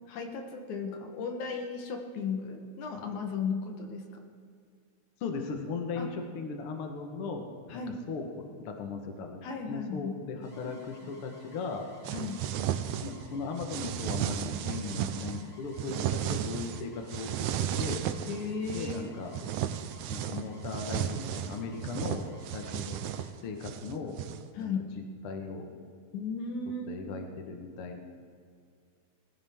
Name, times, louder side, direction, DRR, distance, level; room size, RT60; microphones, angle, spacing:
voice 1, 0.1-4.2 6.0-6.1 7.7-8.0 9.4-10.1 12.1-12.4 18.3-19.1 24.6-24.8 26.1-27.0, left 5 dB, 80° left, 3 dB, 2.6 m, -35 dB
voice 2, 5.2-7.4 7.7-9.4 9.7-11.9 13.0-17.3 17.6-18.1 18.7-19.6 20.1-22.2 22.5-23.0 23.4-24.2 24.6-24.7 25.2-25.9 26.9-28.0, left 4 dB, 55° left, 3 dB, 1.9 m, -37 dB
sound 1, 10.4-23.3, left 2 dB, 30° left, 2.3 m, -57 dB
sound 2, 12.0-13.3 13.6-15.4 15.8-16.8 17.1-19.0 19.3-24.5, right 10 dB, 85° right, 2.0 m, -34 dB
20.0 x 15.5 x 3.6 m, 2.3 s
omnidirectional pair, 3.4 m